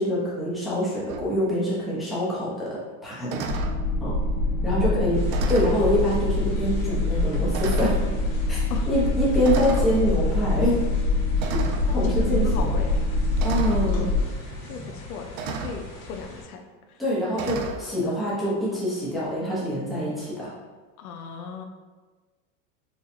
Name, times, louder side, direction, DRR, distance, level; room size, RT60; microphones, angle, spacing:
voice 1, 0.0-3.4 4.0-4.1 4.6-5.2 5.5-8.0 8.5-8.6 8.9-10.8 11.5-11.6 11.9-12.7 13.4-14.1 17.0-20.5, equal, ahead, -9 dB, 0.8 m, -25 dB
sound 1, 1.1-1.3 3.3-3.8 5.3-5.8 6.7-6.8 7.5-8.0 9.4-9.9 11.4-11.9 13.4-13.9 15.4-15.8 17.3-17.8, right 6 dB, 75° right, 0.5 m, -33 dB
sound 2, 3.5-14.2, left 2 dB, 35° left, 1.3 m, -24 dB
voice 2, 4.7-5.1 8.7-8.9 11.9-13.0 14.7-16.6 21.0-21.6, left 5 dB, 85° left, 4 dB, 0.6 m, -35 dB
sound 3, 5.1-16.4, left 2 dB, 65° left, 1.4 m, -41 dB
4.3 x 2.4 x 2.7 m, 1.3 s
supercardioid pair, 140°, 42 cm